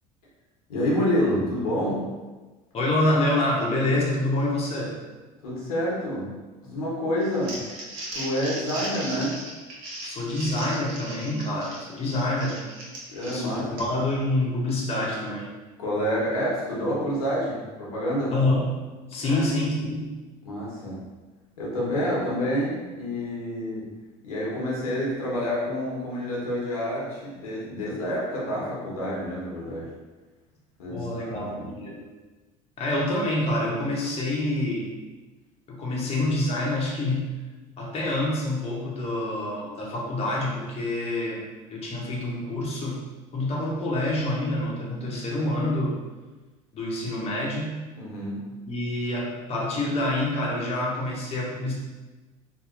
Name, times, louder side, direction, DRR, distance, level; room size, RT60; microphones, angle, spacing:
voice 1, 0.7-2.1 5.4-6.4 6.6-7.6 8.1-9.4 13.1-13.8 15.8-18.3 19.2-19.5 20.4-21.0 21.6-23.9 24.2-29.9 30.8-31.8 48.0-48.5, equal, 90° left, -6 dB, 1.0 m, -28 dB
voice 2, 2.7-5.0 10.0-12.6 13.2-15.5 18.3-20.1 30.9-32.0 32.8-34.9 35.7-37.4 37.8-43.1 43.3-46.0 46.7-47.8 48.7-51.7, left 1 dB, 35° left, -4 dB, 0.8 m, -27 dB
Crumpling crinkling, 7.2-14.1, right 1 dB, 60° right, 0.9 m, -37 dB
2.9 x 2.7 x 2.4 m, 1.2 s
hypercardioid pair, 75°, 18 cm